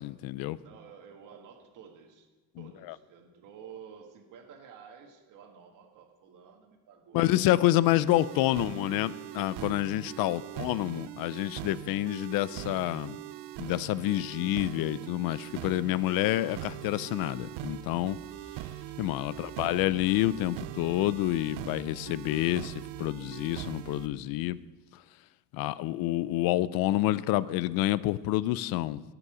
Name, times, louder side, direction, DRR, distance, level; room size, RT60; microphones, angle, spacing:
voice 1, 0.0-0.6 2.6-2.9 7.1-13.2 13.6-18.2 19.0-24.6 24.9-25.0 25.5-29.0, left 15 dB, 60° left, 18 dB, 0.5 m, -28 dB
voice 2, 0.6-2.3 2.6-7.4 7.9-8.1 8.4-8.6 10.3-10.5 19.3-19.6, right 7 dB, 50° right, 2 dB, 1.6 m, -51 dB
sound 1, 8.1-24.1, right 15 dB, 80° right, 0.6 m, -41 dB
sound 2, 17.3-24.2, right 2 dB, 15° right, 2.0 m, -54 dB
18.0 x 6.9 x 4.9 m, 1.2 s
cardioid pair, 135°, 40 cm